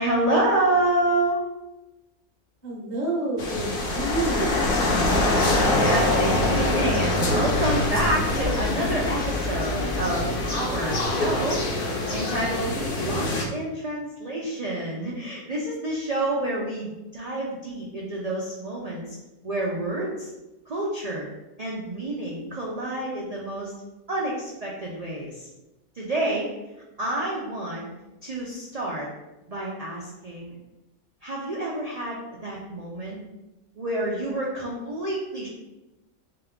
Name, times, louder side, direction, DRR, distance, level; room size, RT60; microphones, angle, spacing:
voice 1, 0.0-1.4 5.7-19.2 19.4-20.3 20.7-21.3 21.6-23.7 24.1-25.5 25.9-26.5 27.0-27.8 28.2-29.1 29.5-30.6 31.2-33.2 33.8-35.5, right 1 dB, 80° right, -4 dB, 0.3 m, -28 dB
voice 2, 2.6-4.7, right 2 dB, 35° right, -4 dB, 0.9 m, -29 dB
sound 1, 3.4-13.4, left 2 dB, 55° left, 0.7 m, -24 dB
3.4 x 2.9 x 3.6 m, 1.0 s
omnidirectional pair, 1.5 m